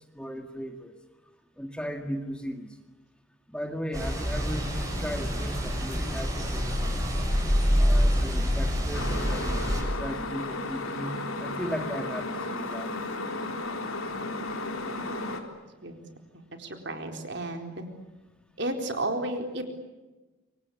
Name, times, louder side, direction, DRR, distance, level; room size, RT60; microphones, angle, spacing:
voice 1, 0.1-0.9 1.6-2.7 3.5-6.8 7.8-13.0, equal, 5° left, 5 dB, 2.0 m, -37 dB
sound 1, 3.9-9.8, equal, 15° right, 7.1 m, -26 dB
sound 2, 8.9-15.4, left 2 dB, 90° left, 3.8 m, -34 dB
voice 2, 16.3-17.9 18.6-19.7, right 1 dB, 55° right, 5 dB, 4.1 m, -33 dB
28.0 x 25.0 x 8.5 m, 1.2 s
head